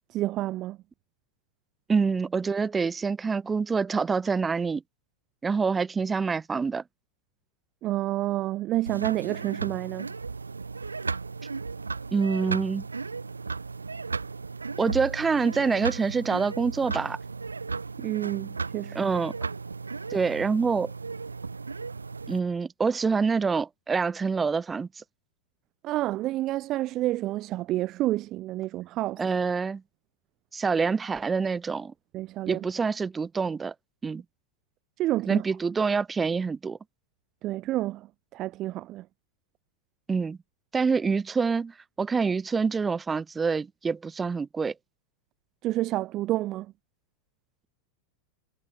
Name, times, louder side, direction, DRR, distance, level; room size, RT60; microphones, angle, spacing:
voice 1, 0.1-0.8 7.8-10.1 18.0-19.1 25.8-29.2 32.1-32.6 35.0-35.4 37.4-38.1 38.3-39.0 45.6-46.7, right 16 dB, 35° right, 1.1 m, -29 dB
voice 2, 1.9-4.8 5.4-6.8 12.1-12.8 14.8-17.2 18.9-19.3 20.1-20.9 22.3-25.0 29.2-29.8 30.5-31.9 32.5-33.7 34.0-34.2 35.3-36.8 40.1-40.4 40.7-44.7, right 5 dB, 15° right, 1.5 m, -26 dB
sound 1, 8.9-22.4, right 4 dB, 75° right, 2.8 m, -35 dB
figure-of-eight pair, 90°, 0 cm